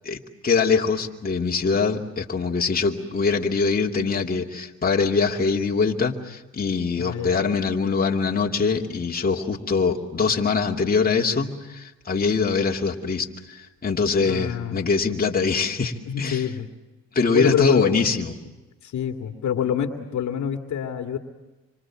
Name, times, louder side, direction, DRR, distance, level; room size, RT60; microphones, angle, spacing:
voice 1, 0.0-16.4 17.1-18.3, left 4 dB, 30° left, 0 dB, 2.6 m, -23 dB
voice 2, 7.0-7.4 14.2-14.8 16.1-16.7 17.3-17.9 18.8-21.2, left 9 dB, 70° left, 6 dB, 2.1 m, -26 dB
27.0 x 26.0 x 7.4 m, 1.1 s
cardioid pair, 90°, 30 cm